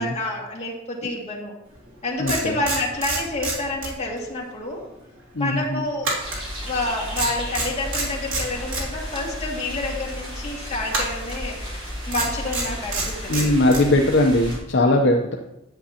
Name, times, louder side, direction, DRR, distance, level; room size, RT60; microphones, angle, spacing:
voice 1, 0.0-1.5 2.0-4.8 5.4-6.1 6.6-13.5 14.8-15.1, left 2 dB, 30° left, -3 dB, 2.2 m, -29 dB
sound 1, 1.8-1.9 2.3-4.3 4.6-4.8 6.0-6.9 7.1-8.9 10.9-11.4 12.1-13.9, right 3 dB, 85° right, 2.9 m, -27 dB
voice 2, 2.2-2.6 5.3-5.8 13.3-15.4, left 1 dB, 60° left, 1 dB, 0.7 m, -19 dB
sound 2, 6.2-14.6, equal, 30° right, 3.5 m, -34 dB
10.5 x 8.4 x 2.9 m, 0.90 s
head